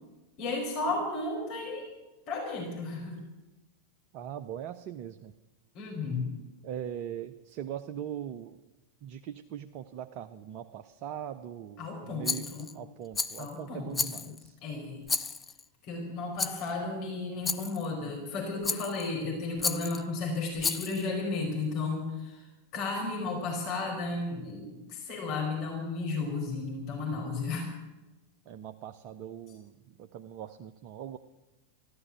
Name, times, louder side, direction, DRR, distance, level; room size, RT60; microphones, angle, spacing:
voice 1, 0.4-1.9 2.3-3.2 5.7-6.4 11.8-12.7 13.4-14.3 14.6-15.0 15.8-22.5 22.7-27.7, left 3 dB, 40° left, -1 dB, 4.7 m, -34 dB
voice 2, 4.1-5.3 6.6-8.6 9.0-14.6 28.5-31.2, right 9 dB, 40° right, 9 dB, 0.6 m, -41 dB
Rattle, 12.2-12.7 13.1-13.5 13.9-14.5 15.1-15.6 16.4-16.7 17.4-17.9 18.6-19.1 19.6-20.0 20.6-21.1, left 5 dB, 15° left, 0.6 m, -32 dB
14.5 x 12.0 x 7.9 m, 1.1 s
figure-of-eight pair, 90°, 0 cm